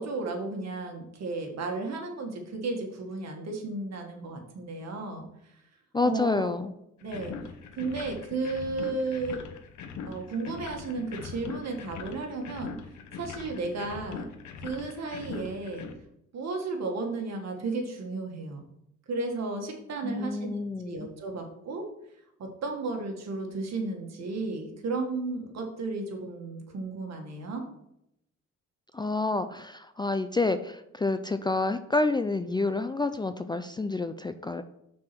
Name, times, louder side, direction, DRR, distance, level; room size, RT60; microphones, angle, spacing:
voice 1, 0.0-5.2 6.0-6.5 7.0-7.3 7.7-9.4 10.1-12.8 13.1-14.2 14.6-15.9 16.3-18.6 19.1-21.8 22.4-27.6, right 3 dB, 60° right, 3 dB, 1.8 m, -34 dB
voice 2, 5.9-6.7 20.0-21.1 28.9-34.6, left 3 dB, 15° left, 10 dB, 0.4 m, -28 dB
sound 1, 7.0-15.9, left 5 dB, 70° left, 1.0 m, -41 dB
6.1 x 4.8 x 5.9 m, 0.79 s
cardioid pair, 90°, 30 cm